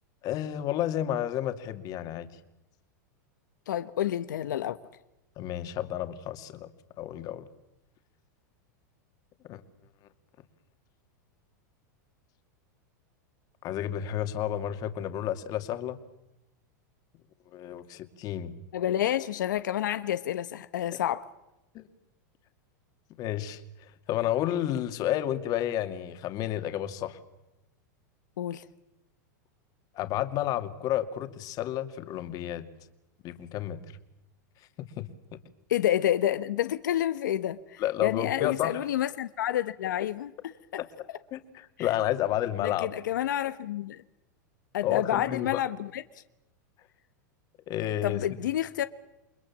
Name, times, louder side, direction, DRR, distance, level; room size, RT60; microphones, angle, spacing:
voice 1, 0.2-2.3 5.4-6.7 7.0-7.4 9.5-9.6 13.6-16.0 17.5-18.5 20.9-21.0 21.7-21.8 23.2-27.2 29.9-32.7 33.2-33.8 35.0-35.4 37.8-38.8 40.8-40.9 41.3-42.9 44.8-45.6 47.7-48.4, left 12 dB, 40° left, 2.5 m, -31 dB
voice 2, 3.7-4.8 18.7-21.3 28.4-28.6 35.7-40.3 41.8-41.9 42.6-44.0 44.7-46.0 48.0-48.8, left 11 dB, 85° left, 1.1 m, -29 dB
29.0 x 22.0 x 7.4 m
supercardioid pair, 135°, 10 cm